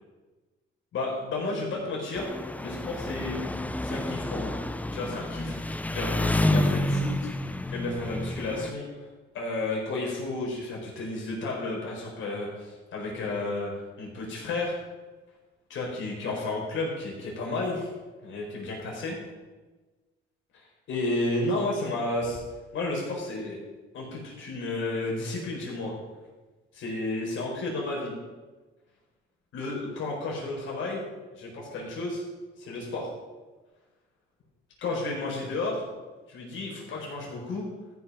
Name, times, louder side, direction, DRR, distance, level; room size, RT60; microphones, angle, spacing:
voice 1, 0.9-2.3 2.6-3.4 3.8-4.6 4.9-8.9 9.3-13.7 14.0-14.8 15.7-17.9 18.2-19.2 20.9-22.4 22.7-23.6 23.9-25.9 26.7-28.1 29.5-31.0 31.4-32.2 32.6-33.1 34.8-35.8 36.3-37.6, left 2 dB, 75° left, -2 dB, 4.6 m, -32 dB
Engine, 2.1-8.7, left 1 dB, 5° left, 0.6 m, -29 dB
14.0 x 6.1 x 6.2 m, 1.2 s
cardioid pair, 90°, 20 cm